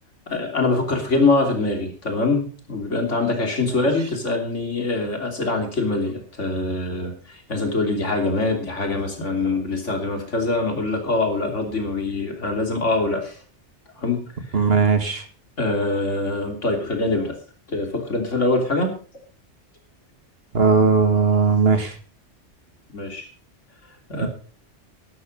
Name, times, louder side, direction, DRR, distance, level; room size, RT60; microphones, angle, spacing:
voice 1, 0.3-13.4 13.9-14.6 15.6-17.4 17.7-18.9 22.9-23.3 24.1-24.3, left 2 dB, 80° left, 4 dB, 3.5 m, -24 dB
voice 2, 14.5-15.2 20.5-22.0 24.2-24.3, right 5 dB, 55° right, 8 dB, 2.0 m, -18 dB
12.0 x 11.5 x 5.3 m, 0.39 s
omnidirectional pair, 1.2 m